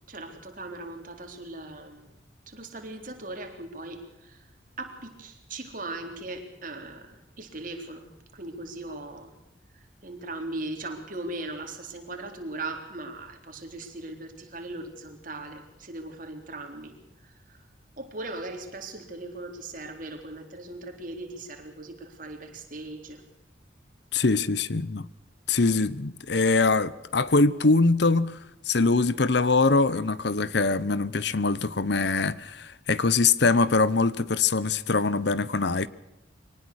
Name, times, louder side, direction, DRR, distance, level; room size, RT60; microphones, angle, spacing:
voice 1, 0.1-2.1 2.5-9.3 9.7-17.7 18.0-23.2, right 2 dB, 45° right, 3.8 m, -39 dB
voice 2, 24.1-25.1 25.5-28.4 28.7-35.9, left 3 dB, 60° left, 0.8 m, -23 dB
23.5 x 19.0 x 6.4 m
head